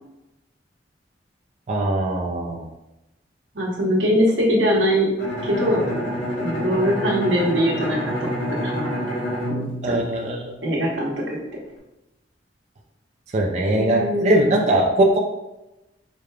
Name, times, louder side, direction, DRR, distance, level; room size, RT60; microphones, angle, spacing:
voice 1, 1.7-2.7 9.8-10.5 13.3-15.2, right 1 dB, 40° right, -1 dB, 0.4 m, -21 dB
voice 2, 3.5-5.1 5.4-5.9 6.4-8.3 8.6-9.0 9.5-10.0 10.6-11.4 13.7-14.6, equal, 85° right, -2 dB, 1.1 m, -22 dB
Bowed string instrument, 5.2-10.9, equal, 70° left, 1.0 m, -28 dB
5.1 x 2.2 x 3.3 m, 0.95 s
head